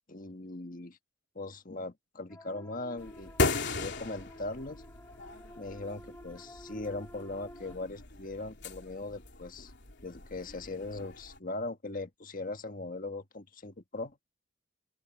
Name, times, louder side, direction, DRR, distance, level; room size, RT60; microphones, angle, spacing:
voice 1, 0.1-1.0 1.3-4.8 5.5-9.7 10.0-14.2, left 2 dB, 40° left, 1.6 m, -40 dB
sound 1, 2.3-7.8, equal, 10° left, 3.4 m, -52 dB
sound 2, 3.0-11.4, left 3 dB, 55° left, 3.2 m, -38 dB
open air
head